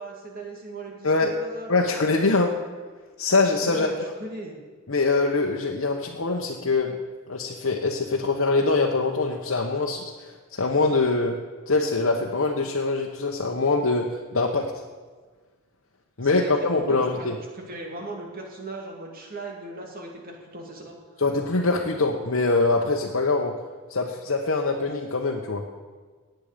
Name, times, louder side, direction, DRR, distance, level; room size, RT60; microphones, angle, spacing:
voice 1, 0.0-1.7 3.6-3.9 4.2-4.6 16.2-21.0, right 2 dB, 45° right, 1 dB, 2.5 m, -38 dB
voice 2, 1.7-2.5 3.2-3.9 4.9-7.0 7.3-11.4 11.7-14.1 14.3-14.7 16.2-17.4 21.2-23.5 23.9-25.6, left 3 dB, 70° left, -1 dB, 1.1 m, -23 dB
17.0 x 9.2 x 5.1 m, 1.4 s
head